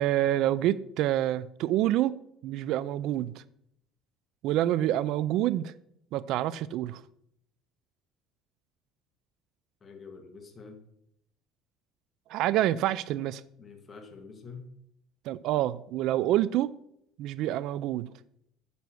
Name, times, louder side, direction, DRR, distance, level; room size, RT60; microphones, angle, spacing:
voice 1, 0.0-2.2 2.4-3.4 4.4-5.7 6.1-7.0 12.3-13.4 15.3-16.7 17.2-18.1, right 13 dB, 65° right, 0.4 m, -27 dB
voice 2, 9.8-10.8 13.6-14.7, left 4 dB, 25° left, 1.9 m, -46 dB
9.4 x 6.9 x 6.2 m
cardioid pair, 130°, 0 cm